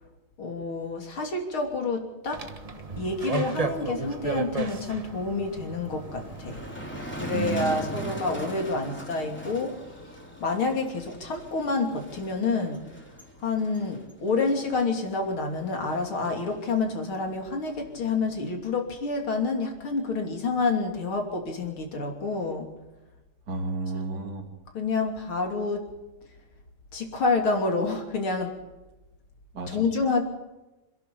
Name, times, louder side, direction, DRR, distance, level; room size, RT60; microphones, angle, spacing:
voice 1, 0.4-2.4 3.0-6.6 7.2-9.7 10.4-12.8 13.4-22.7 23.9-24.0 24.7-25.8 26.9-28.5 29.7-30.2, left 3 dB, 90° left, 3 dB, 4.0 m, -28 dB
sound 1, 2.3-7.5, right 4 dB, 25° right, 1.0 m, -34 dB
Motor vehicle (road), 5.9-18.5, equal, 5° left, 3.3 m, -41 dB
voice 2, 7.3-8.2 23.5-24.5 29.5-29.8, right 4 dB, 50° right, 1 dB, 3.3 m, -32 dB
27.0 x 11.0 x 8.6 m, 1.1 s
omnidirectional pair, 2.2 m